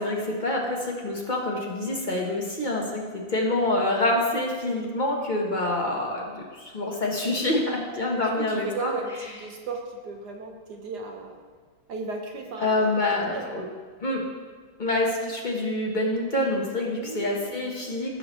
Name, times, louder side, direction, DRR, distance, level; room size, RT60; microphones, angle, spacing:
voice 1, 0.0-8.9 12.6-13.7 14.0-14.2 14.8-18.2, left 2 dB, 30° left, -2 dB, 0.9 m, -26 dB
voice 2, 8.1-11.4 11.9-13.7 17.0-17.6, right 3 dB, 60° right, 3 dB, 1.2 m, -36 dB
15.0 x 5.8 x 3.1 m, 1.5 s
omnidirectional pair, 2.2 m